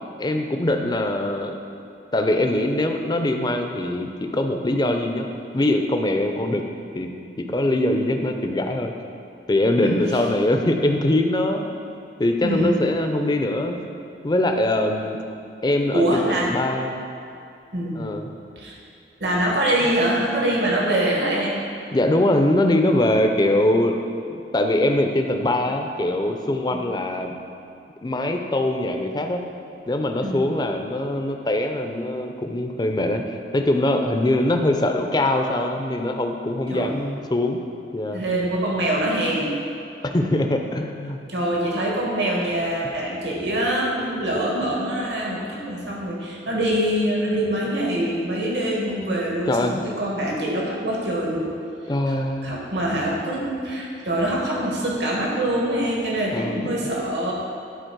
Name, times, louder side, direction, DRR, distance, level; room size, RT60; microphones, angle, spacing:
voice 1, 0.2-1.6 2.1-5.3 5.5-6.6 6.9-7.1 7.4-8.9 9.5-11.7 12.2-13.8 14.2-15.2 15.6-17.0 18.0-18.3 21.9-24.0 24.3-27.4 28.0-29.4 29.9-37.6 37.9-38.2 40.0-41.2 49.5-49.8 51.9-52.6 56.3-56.7, left 1 dB, 25° left, 4 dB, 0.5 m, -22 dB
voice 2, 12.4-12.9 15.9-16.5 17.7-18.1 18.6-18.8 19.2-21.5 26.7-26.8 30.2-30.5 36.7-37.1 38.1-39.5 41.3-51.5 52.4-57.4, right 1 dB, 75° right, -3 dB, 1.5 m, -24 dB
10.5 x 4.1 x 4.6 m, 2.6 s
head